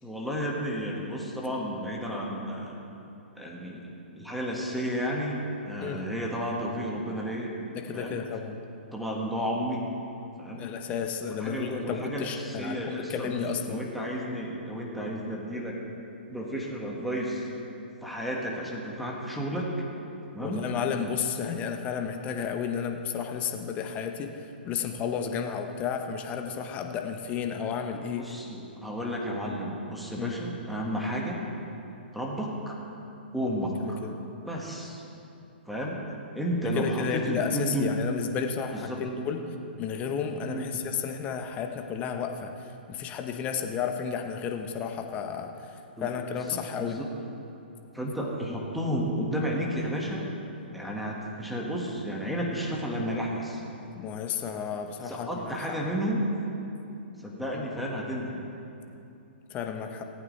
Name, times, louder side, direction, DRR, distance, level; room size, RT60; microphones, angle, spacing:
voice 1, 0.0-2.8 3.4-3.9 4.2-7.5 7.9-8.2 8.9-9.8 10.4-10.7 11.3-15.8 16.3-17.5 18.0-19.7 20.3-20.6 28.2-31.4 32.1-32.8 33.3-34.0 34.5-35.0 35.7-36.0 36.4-37.9 38.7-39.0 40.5-40.8 46.0-47.1 47.9-50.3 50.7-53.6 55.0-56.3 57.2-58.4, equal, ahead, -3 dB, 1.7 m, -32 dB
voice 2, 7.7-8.6 10.5-13.8 20.4-24.3 24.6-28.2 30.2-30.3 33.8-34.1 36.7-39.4 39.8-42.5 42.9-47.0 54.0-55.5 59.5-60.0, left 7 dB, 25° left, 5 dB, 1.0 m, -32 dB
18.5 x 8.7 x 3.3 m, 2.8 s
hypercardioid pair, 130°, 6 cm